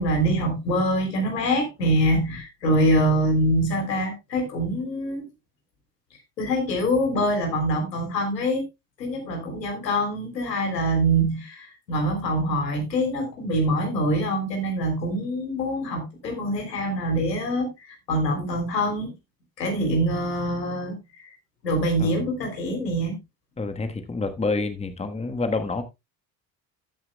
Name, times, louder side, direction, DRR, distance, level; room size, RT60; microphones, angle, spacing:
voice 1, 0.0-5.3 6.4-8.6 9.0-19.1 19.6-20.9 21.2-21.3 21.6-23.2, equal, 85° left, 3 dB, 3.4 m, -24 dB
voice 2, 23.6-25.8, left 3 dB, 15° left, 9 dB, 1.3 m, -28 dB
13.5 x 9.5 x 2.2 m, 0.22 s
figure-of-eight pair, 60°, 49 cm